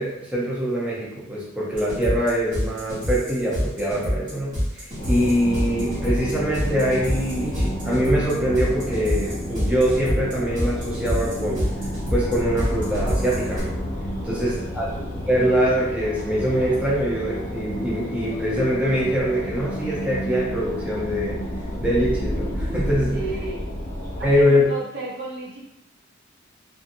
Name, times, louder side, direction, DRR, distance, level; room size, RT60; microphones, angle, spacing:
voice 1, 0.0-11.6 12.1-15.0 15.3-21.4 21.8-23.2 24.2-24.6, equal, 5° right, -6 dB, 0.6 m, -23 dB
sound 1, 1.7-13.6, equal, 40° right, 1.2 m, -27 dB
sound 2, 5.0-24.4, equal, 35° left, 1.0 m, -30 dB
voice 2, 14.2-14.8 23.1-23.6 24.2-25.7, right 3 dB, 55° right, -2 dB, 0.6 m, -34 dB
2.6 x 2.6 x 2.5 m, 0.82 s
head